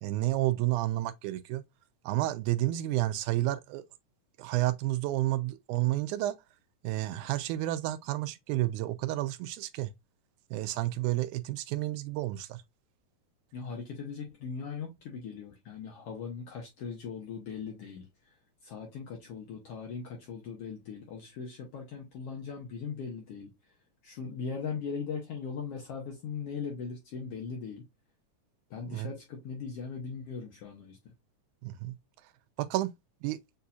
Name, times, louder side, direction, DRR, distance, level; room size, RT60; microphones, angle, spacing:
voice 1, 0.0-1.6 2.1-3.8 4.4-6.3 6.8-9.9 10.5-12.6 28.9-29.1 31.6-31.9 32.6-32.9 33.2-33.4, right 16 dB, 85° right, 2.0 m, -30 dB
voice 2, 13.5-18.1 18.6-23.5 24.0-27.8 28.7-31.0, left 5 dB, 60° left, 1.8 m, -39 dB
6.8 x 2.7 x 2.3 m
omnidirectional pair, 3.4 m